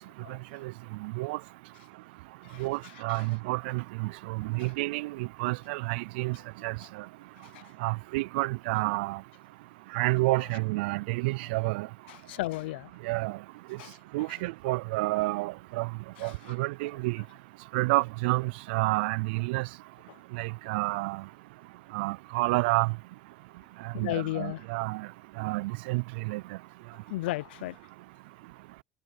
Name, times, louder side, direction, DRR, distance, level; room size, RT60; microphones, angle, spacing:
voice 1, 1.0-1.4 2.6-6.4 6.6-6.8 7.8-9.2 9.9-11.9 13.0-13.4 14.1-15.9 16.2-17.2 17.7-19.7 20.4-21.2 21.9-22.9 23.8-25.1 25.4-26.4, right 23 dB, 85° right, 0.4 m, -29 dB
voice 2, 12.1-12.9 13.8-13.9 16.2-16.3 23.9-24.6 27.1-27.8, left 18 dB, 90° left, 0.6 m, -34 dB
supercardioid pair, 95°, 5 cm